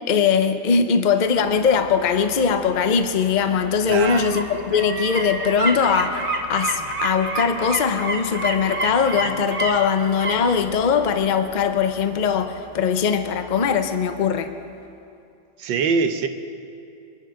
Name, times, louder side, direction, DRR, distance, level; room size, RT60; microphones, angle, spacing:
voice 1, 0.1-14.5, left 6 dB, 80° left, 8 dB, 0.4 m, -21 dB
sound 1, 1.1-13.9 14.3-14.4, right 1 dB, 30° right, 1.6 m, -31 dB
voice 2, 3.9-4.2 15.6-16.3, right 5 dB, 85° right, 8 dB, 1.6 m, -22 dB
24.5 x 10.5 x 5.2 m, 2.5 s
omnidirectional pair, 2.0 m